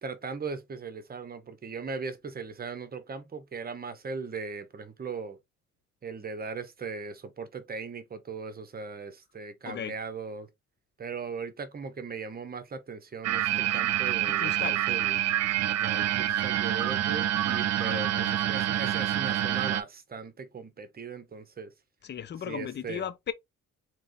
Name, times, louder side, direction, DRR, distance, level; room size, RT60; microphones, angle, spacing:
voice 1, 0.0-5.4 6.0-10.5 11.0-15.2 15.7-21.7 22.5-23.0, right 5 dB, 30° right, 0.9 m, -38 dB
sound 1, 13.2-19.8, right 12 dB, 60° right, 0.5 m, -27 dB
voice 2, 14.3-14.8 16.2-16.3 17.8-18.4 22.0-23.3, left 8 dB, 35° left, 0.5 m, -37 dB
3.5 x 3.0 x 2.6 m
cardioid pair, 90°, 30 cm